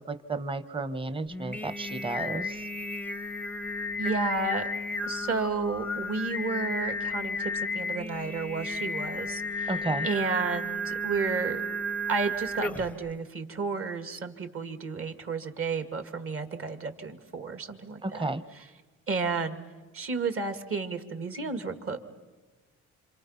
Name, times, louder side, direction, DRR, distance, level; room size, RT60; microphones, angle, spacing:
voice 1, 0.1-2.6 9.7-10.1 18.0-18.4, right 3 dB, 15° right, 12 dB, 1.1 m, -32 dB
Singing, 1.3-13.0, left 1 dB, 5° left, 0.7 m, -33 dB
voice 2, 4.0-4.7 5.1-9.7 10.0-11.6 12.1-18.3 19.1-19.6 19.9-22.0, right 4 dB, 45° right, 7 dB, 2.3 m, -32 dB
27.0 x 26.5 x 5.8 m, 1.3 s
cardioid pair, 90°, 30 cm